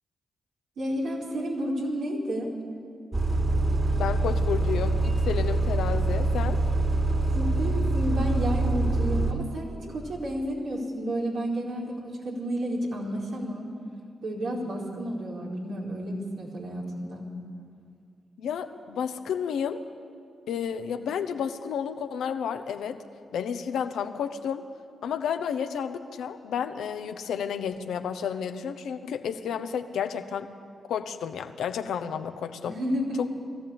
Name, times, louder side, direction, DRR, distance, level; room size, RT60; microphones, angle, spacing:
voice 1, 0.8-2.5 7.3-13.7 14.2-17.3 32.7-33.1, equal, 75° right, -4 dB, 4.5 m, -31 dB
Bus, 3.1-9.3, right 2 dB, 35° right, 3.1 m, -25 dB
voice 2, 4.0-6.6 18.4-19.8 20.5-23.0 23.3-24.7 25.0-30.5 30.9-32.8 33.2-33.3, left 7 dB, 80° left, 8 dB, 1.0 m, -31 dB
21.0 x 14.0 x 8.8 m, 2.2 s
supercardioid pair, 45°, 0 cm